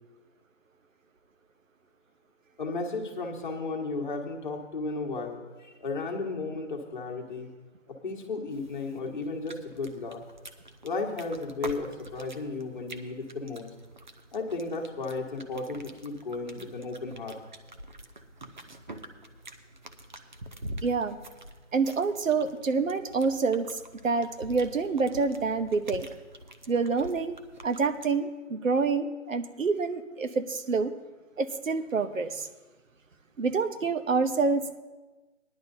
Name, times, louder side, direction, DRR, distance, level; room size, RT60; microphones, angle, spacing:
voice 1, 2.6-7.5 7.9-10.2 10.8-13.7 14.3-17.4, left 3 dB, 40° left, 0 dB, 1.4 m, -34 dB
sound 1, 8.5-28.0, right 1 dB, 40° right, 0.6 m, -46 dB
voice 2, 20.8-21.2 21.7-23.7 24.0-26.1 26.7-27.4 27.6-30.9 31.4-32.5 33.4-34.8, right 4 dB, 85° right, 10 dB, 0.9 m, -27 dB
18.0 x 11.0 x 2.6 m, 1.2 s
figure-of-eight pair, 165°, 38 cm